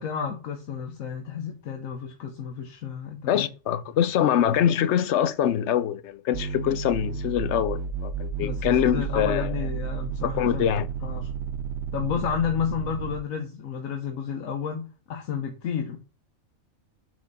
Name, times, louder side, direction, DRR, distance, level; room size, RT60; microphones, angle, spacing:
voice 1, 0.0-3.5 8.4-10.6 11.0-11.3 11.9-16.0, left 7 dB, 90° left, 1.3 m, -31 dB
voice 2, 3.3-9.5 10.4-10.9, left 10 dB, 65° left, 0.9 m, -24 dB
sound 1, 6.3-13.2, right 6 dB, 65° right, 0.8 m, -32 dB
8.4 x 4.9 x 4.0 m
omnidirectional pair, 1.4 m